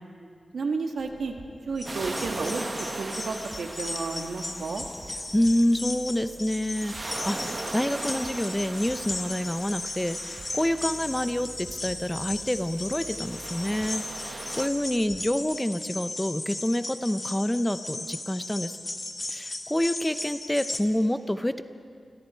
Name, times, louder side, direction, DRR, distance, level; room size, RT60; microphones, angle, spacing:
voice 1, 0.5-1.3 1.7-4.8, right 4 dB, 85° right, 3 dB, 2.2 m, -32 dB
sound 1, 1.0-15.3, right 3 dB, 65° right, 2.3 m, -49 dB
sound 2, 1.8-20.8, left 2 dB, 25° left, 1.2 m, -37 dB
sound 3, 1.9-5.6 6.6-11.7 12.5-14.7, right 2 dB, 30° right, 0.9 m, -39 dB
voice 2, 5.3-18.8 19.3-21.6, left 1 dB, 10° left, 11 dB, 0.7 m, -27 dB
29.5 x 25.0 x 4.6 m, 2.2 s
wide cardioid pair, 150°, 0 cm